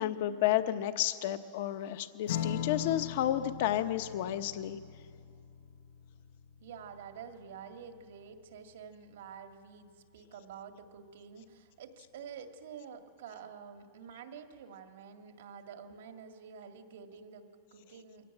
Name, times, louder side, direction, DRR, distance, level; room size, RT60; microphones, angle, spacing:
voice 1, 0.0-4.8, left 12 dB, 55° left, 10 dB, 0.8 m, -31 dB
Strum, 2.3-9.1, left 9 dB, 80° left, 0.9 m, -41 dB
voice 2, 6.6-18.3, right 7 dB, 80° right, 6 dB, 1.9 m, -49 dB
23.0 x 17.0 x 9.0 m, 2.3 s
supercardioid pair, 170°, 0 cm